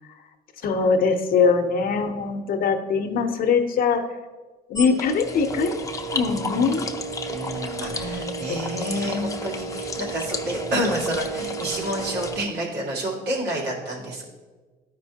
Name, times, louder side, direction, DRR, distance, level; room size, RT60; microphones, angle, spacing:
voice 1, 0.6-4.0 4.7-5.8 6.1-6.9 8.0-9.4 11.4-11.5, left 5 dB, 55° left, 6 dB, 0.8 m, -23 dB
sound 1, 4.7-12.4, left 4 dB, 20° left, 0.6 m, -33 dB
sound 2, 5.5-12.6, right 8 dB, 60° right, 0.5 m, -35 dB
voice 2, 7.3-14.2, right 1 dB, 75° right, -3 dB, 2.1 m, -29 dB
12.0 x 5.2 x 2.8 m, 1.3 s
cardioid pair, 110°, 17 cm